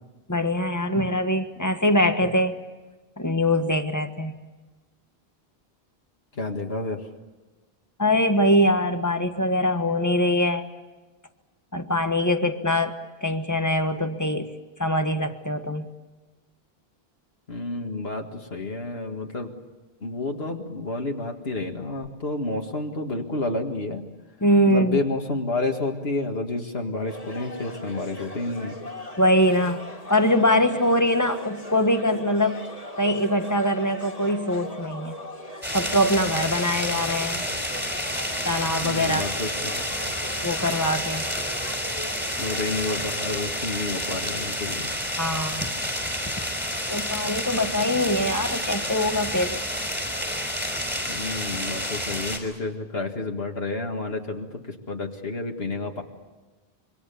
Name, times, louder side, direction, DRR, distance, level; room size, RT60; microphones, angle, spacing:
voice 1, 0.3-2.6 3.2-4.3 8.0-10.7 11.7-14.5 14.8-15.8 24.4-25.0 29.2-29.8 30.1-32.6 33.0-35.1 35.7-37.4 38.5-39.2 40.4-41.2 45.2-45.7 46.9-49.6, left 1 dB, 15° left, 7 dB, 1.5 m, -23 dB
voice 2, 6.3-7.0 17.5-19.5 20.0-24.1 24.7-28.8 38.8-40.1 42.4-44.9 51.1-56.0, left 2 dB, 80° left, 2 dB, 2.2 m, -30 dB
sound 1, 27.1-43.4, left 1 dB, 35° left, 2.7 m, -39 dB
sound 2, 35.6-52.4, equal, 10° right, 4.8 m, -29 dB
26.0 x 24.0 x 7.1 m, 1.2 s
omnidirectional pair, 1.0 m